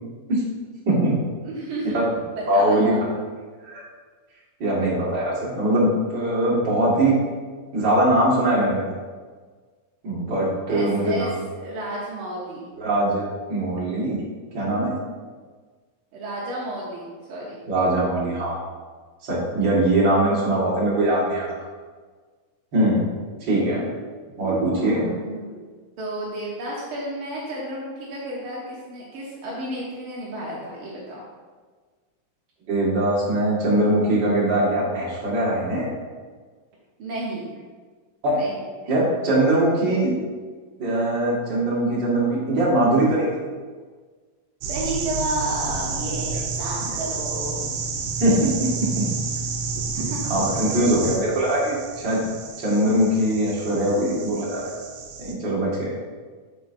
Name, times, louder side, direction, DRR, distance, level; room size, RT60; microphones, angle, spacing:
voice 1, 0.8-1.2 1.9-2.1 2.5-3.0 3.6-3.8 4.6-7.2 7.7-8.9 10.0-11.3 12.8-14.2 14.5-14.9 17.7-18.7 19.2-21.5 22.7-23.1 23.4-23.9 24.4-25.1 32.7-35.9 38.2-38.4 38.9-40.1 40.8-43.3 48.2-48.5 49.0-49.1 50.3-52.2 52.6-54.7 55.2-56.0, right 1 dB, 40° right, -5 dB, 2.0 m, -21 dB
voice 2, 1.4-3.0 10.7-11.3 11.5-12.6 16.1-17.6 24.4-31.2 37.0-37.6 38.3-38.5 44.7-47.7 49.9-50.2, right 1 dB, 70° right, -5 dB, 1.3 m, -32 dB
sound 1, 44.6-55.3, right 4 dB, 85° right, 2.4 m, -30 dB
8.1 x 6.8 x 2.6 m, 1.5 s
omnidirectional pair, 3.9 m